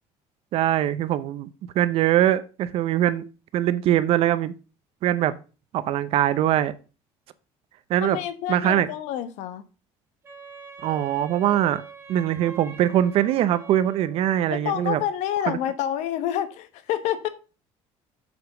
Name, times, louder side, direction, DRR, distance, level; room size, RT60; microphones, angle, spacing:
voice 1, 0.5-1.5 1.7-3.2 3.5-4.5 5.0-5.3 5.7-6.7 7.9-8.2 8.5-8.9 10.8-11.8 12.1-15.0 15.5-15.6, right 12 dB, 55° right, 0.7 m, -22 dB
voice 2, 8.0-9.6 14.5-17.3, left 11 dB, 70° left, 1.1 m, -28 dB
Wind instrument woodwind instrument, 10.2-14.3, right 4 dB, 20° right, 1.6 m, -43 dB
7.9 x 5.3 x 5.1 m
cardioid pair, 160°, 12 cm